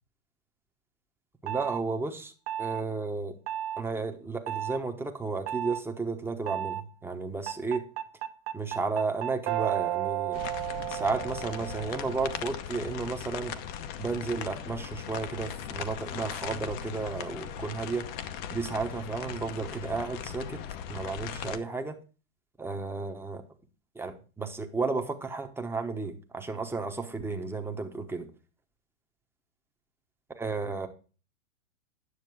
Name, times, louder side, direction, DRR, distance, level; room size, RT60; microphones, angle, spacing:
voice 1, 1.4-2.3 2.6-3.3 3.8-7.8 8.5-10.4 10.9-13.5 14.0-18.1 18.5-20.6 20.9-22.0 22.6-23.4 23.9-28.3 30.3-30.9, right 4 dB, 5° right, 4 dB, 1.1 m, -33 dB
sound 1, 1.5-1.8 2.5-2.8 3.5-3.8 4.5-4.8 5.5-5.8 6.5-6.8 7.5-12.5, right 13 dB, 50° right, 1.3 m, -33 dB
sound 2, 10.3-21.6, left 9 dB, 45° left, 1.0 m, -38 dB
9.8 x 6.5 x 4.8 m, 0.36 s
hypercardioid pair, 130°, 41 cm